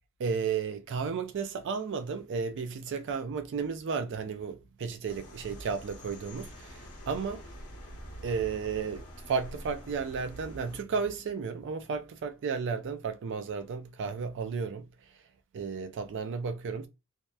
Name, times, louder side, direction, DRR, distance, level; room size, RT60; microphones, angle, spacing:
voice 1, 0.2-7.5 8.2-15.1 15.5-16.9, right 5 dB, 55° right, 0.4 m, -33 dB
sound 1, 5.1-10.8, equal, 75° left, 0.9 m, -46 dB
2.8 x 2.0 x 2.2 m
head